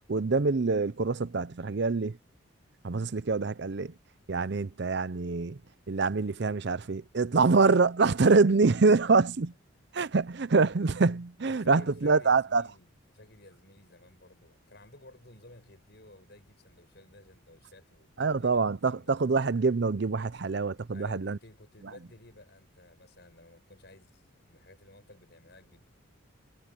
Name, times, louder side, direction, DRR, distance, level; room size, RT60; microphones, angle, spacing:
voice 1, 0.1-2.2 2.8-3.9 4.3-5.6 5.9-9.5 9.9-12.6 18.2-21.4, right 4 dB, 55° right, 0.6 m, -25 dB
voice 2, 8.2-8.9 9.3-9.4 11.4-19.2 20.9-25.9, left 1 dB, 55° left, 7.9 m, -54 dB
head